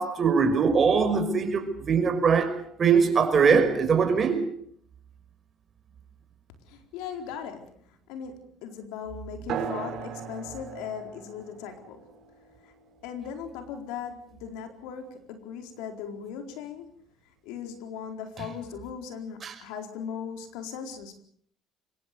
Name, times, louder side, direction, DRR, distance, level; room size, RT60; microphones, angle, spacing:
voice 1, 0.0-4.4 19.4-19.5, right 5 dB, 40° right, 5.7 m, -22 dB
voice 2, 6.7-12.1 12.6-12.7 13.0-16.9 17.4-21.2, left 7 dB, 85° left, 4.3 m, -38 dB
sound 1, 9.5-14.5, right 7 dB, 65° right, 7.1 m, -39 dB
25.0 x 22.5 x 6.9 m
supercardioid pair, 90°, 0 cm